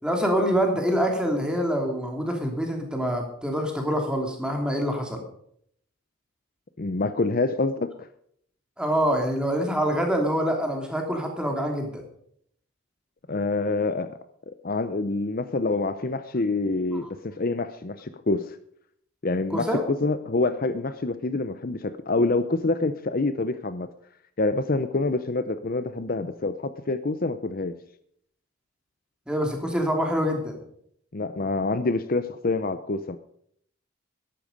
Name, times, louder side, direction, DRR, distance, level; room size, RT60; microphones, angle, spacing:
voice 1, 0.0-5.2 8.8-12.0 17.0-17.1 19.5-19.8 29.3-30.6, equal, 5° right, 2 dB, 2.9 m, -25 dB
voice 2, 6.8-8.1 13.3-14.1 14.6-18.6 19.2-23.9 24.4-27.8 31.1-33.2, left 3 dB, 45° left, 11 dB, 0.6 m, -26 dB
13.5 x 11.5 x 5.2 m, 0.67 s
head